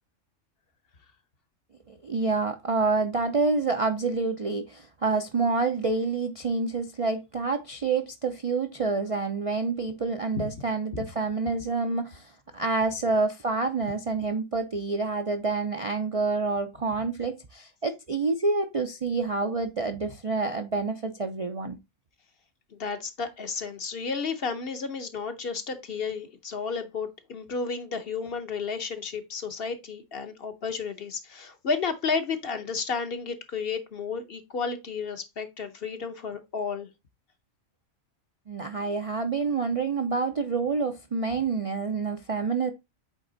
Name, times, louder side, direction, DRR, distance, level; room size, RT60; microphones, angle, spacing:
voice 1, 1.9-21.8 38.5-42.7, right 4 dB, 45° right, 0.4 m, -28 dB
voice 2, 22.7-36.9, left 5 dB, 50° left, 1.0 m, -32 dB
8.4 x 3.5 x 3.9 m
omnidirectional pair, 1.3 m